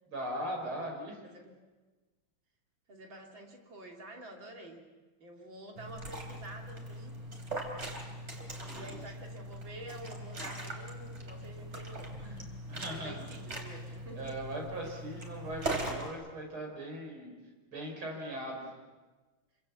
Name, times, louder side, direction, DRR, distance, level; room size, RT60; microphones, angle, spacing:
voice 1, 0.1-1.2 8.7-9.1 12.7-13.3 14.2-17.3 17.7-18.7, right 1 dB, 85° right, 1 dB, 6.3 m, -39 dB
voice 2, 1.2-1.6 2.9-4.9 5.2-7.2 8.7-14.2, right 1 dB, 65° right, 1 dB, 3.8 m, -49 dB
Liquid, 5.8-16.1, right 1 dB, 30° right, 3.9 m, -41 dB
27.0 x 26.0 x 7.2 m, 1.3 s
omnidirectional pair, 2.3 m